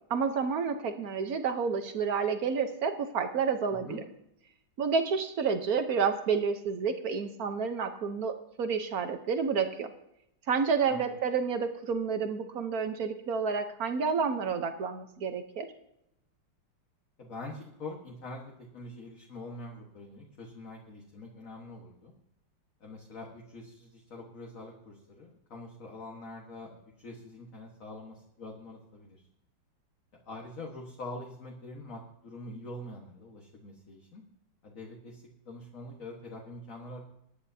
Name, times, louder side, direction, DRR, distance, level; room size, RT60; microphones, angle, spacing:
voice 1, 0.1-4.0 4.8-9.9 10.5-15.7, right 5 dB, 55° right, 8 dB, 1.2 m, -30 dB
voice 2, 17.2-22.1 22.8-29.2 30.3-34.2 34.6-37.0, left 2 dB, 40° left, -1 dB, 1.8 m, -44 dB
22.0 x 9.8 x 2.8 m, 0.80 s
omnidirectional pair, 2.3 m